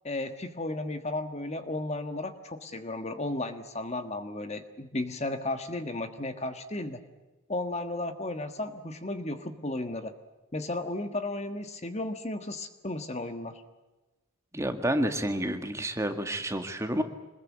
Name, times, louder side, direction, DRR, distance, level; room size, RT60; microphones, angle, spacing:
voice 1, 0.0-7.0 7.5-10.1 10.5-13.6, left 2 dB, 30° left, 8 dB, 1.4 m, -34 dB
voice 2, 14.5-17.0, right 1 dB, 15° right, 6 dB, 1.9 m, -29 dB
26.0 x 21.5 x 8.5 m, 1.1 s
head